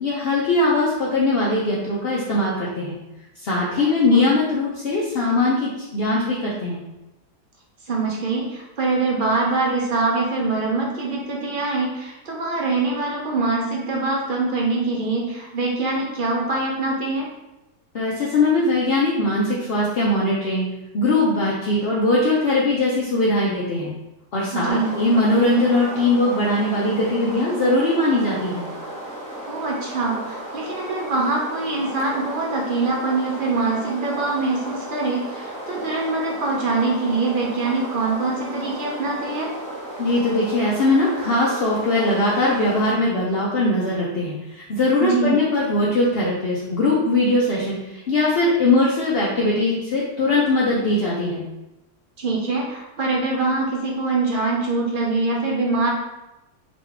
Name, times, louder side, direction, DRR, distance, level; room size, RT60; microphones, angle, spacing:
voice 1, 0.0-3.0 3.4-6.8 17.9-20.7 20.9-23.9 24.3-28.7 40.0-51.4, left 2 dB, 60° left, -5 dB, 0.6 m, -20 dB
voice 2, 3.8-4.3 7.9-17.3 24.5-24.9 29.4-39.5 45.0-45.3 52.2-55.9, right 3 dB, 55° right, -2 dB, 0.5 m, -24 dB
sound 1, 24.7-42.9, right 1 dB, 5° left, 0.7 m, -34 dB
3.7 x 3.0 x 3.4 m, 0.96 s
omnidirectional pair, 1.8 m